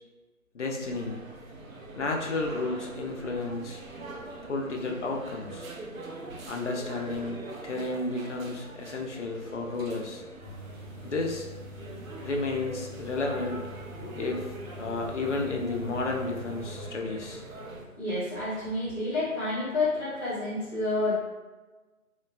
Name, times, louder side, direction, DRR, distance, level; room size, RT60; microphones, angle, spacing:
voice 1, 0.5-1.2 2.0-3.8 4.5-5.7 6.5-10.2 11.0-11.5 12.2-13.6 14.2-17.4, left 3 dB, 55° left, 1 dB, 0.5 m, -32 dB
sound 1, 0.8-17.8, right 2 dB, 65° right, 0.6 m, -43 dB
sound 2, 10.4-16.8, equal, 45° right, 1.3 m, -45 dB
voice 2, 18.0-21.2, left 2 dB, 15° right, -16 dB, 1.0 m, -29 dB
3.1 x 2.2 x 2.2 m, 1.2 s
figure-of-eight pair, 165°, 44 cm